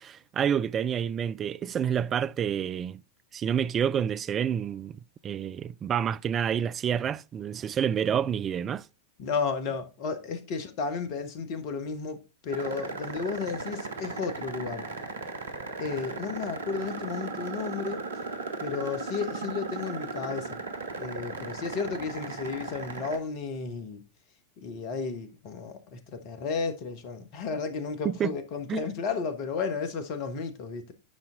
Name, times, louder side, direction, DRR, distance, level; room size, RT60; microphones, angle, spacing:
voice 1, 0.0-3.0 3.3-8.8 28.0-28.4 28.7-28.9, right 8 dB, 25° right, 0.4 m, -28 dB
voice 2, 9.2-14.9 15.8-18.0 18.6-20.6 21.0-24.0 24.6-30.9, left 5 dB, 45° left, 1.6 m, -33 dB
sound 1, 12.5-23.2, right 3 dB, 70° right, 1.2 m, -37 dB
9.8 x 5.9 x 3.8 m
figure-of-eight pair, 90°, 0 cm